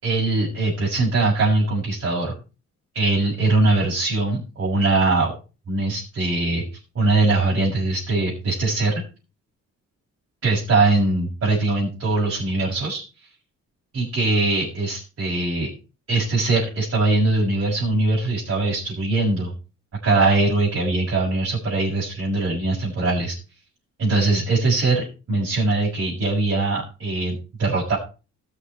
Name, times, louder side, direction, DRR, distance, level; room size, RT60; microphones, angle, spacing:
voice 1, 0.0-2.3 2.9-5.3 5.7-6.6 6.9-9.0 10.4-13.0 13.9-15.7 16.1-19.5 20.0-23.4 24.0-28.0, right 2 dB, 45° right, -6 dB, 6.5 m, -21 dB
19.5 x 6.9 x 4.6 m, 0.33 s
cardioid pair, 145°, 29 cm